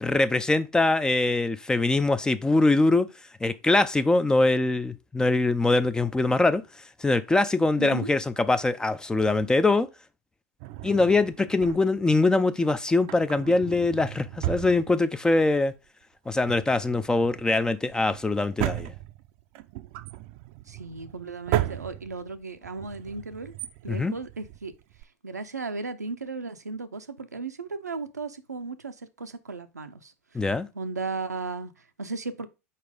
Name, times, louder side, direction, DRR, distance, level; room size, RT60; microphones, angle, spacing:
voice 1, 0.0-3.1 3.4-6.6 7.0-9.9 10.8-15.7 16.3-18.9 23.9-24.1 30.3-30.7, left 2 dB, 10° left, 0.4 m, -23 dB
voice 2, 7.8-8.1 20.7-23.5 23.8-24.7 25.2-30.5 30.7-32.5, right 3 dB, 90° right, 0.7 m, -36 dB
Drawer open or close, 10.6-12.1 12.9-15.5 15.7-15.8 16.3-25.0, right 15 dB, 50° right, 0.5 m, -35 dB
4.7 x 4.2 x 5.0 m
figure-of-eight pair, 95°, 9 cm